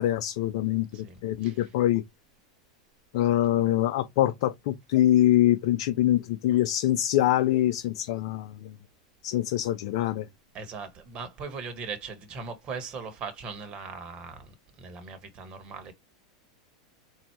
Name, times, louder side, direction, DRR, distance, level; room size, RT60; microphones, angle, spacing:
voice 1, 0.0-2.0 3.1-8.7 9.2-10.3, left 13 dB, 65° left, 0.5 m, -24 dB
voice 2, 0.9-1.7 10.5-15.9, right 5 dB, 35° right, 1.5 m, -39 dB
4.3 x 2.7 x 4.5 m
hypercardioid pair, 110°, 3 cm